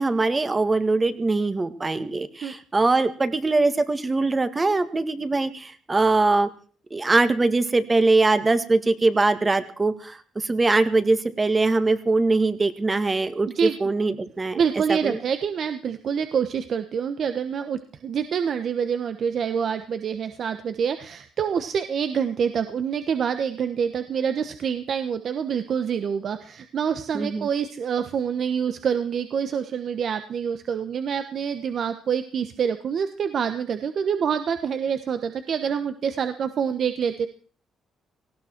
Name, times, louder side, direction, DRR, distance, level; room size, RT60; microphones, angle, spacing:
voice 1, 0.0-6.5 6.9-14.6 14.9-15.2 27.1-27.5, right 3 dB, 25° right, 11 dB, 1.7 m, -22 dB
voice 2, 14.5-37.3, right 7 dB, 60° right, 9 dB, 1.2 m, -26 dB
18.5 x 16.5 x 4.5 m, 0.43 s
cardioid pair, 90°, 0 cm